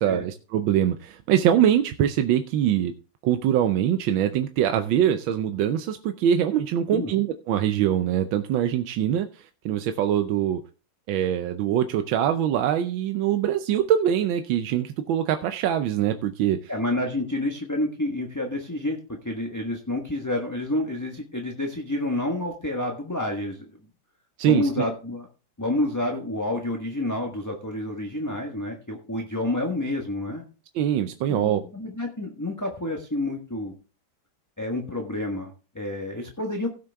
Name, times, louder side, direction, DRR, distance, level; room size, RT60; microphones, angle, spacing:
voice 1, 0.0-2.9 3.2-10.6 11.1-16.7 24.4-24.7 30.7-31.6, right 10 dB, 90° right, 8 dB, 1.5 m, -23 dB
voice 2, 16.7-23.9 24.4-25.3 25.6-30.4 31.3-33.8 34.6-36.7, left 1 dB, 10° left, 2 dB, 1.2 m, -29 dB
16.5 x 6.7 x 3.5 m, 0.36 s
omnidirectional pair, 2.1 m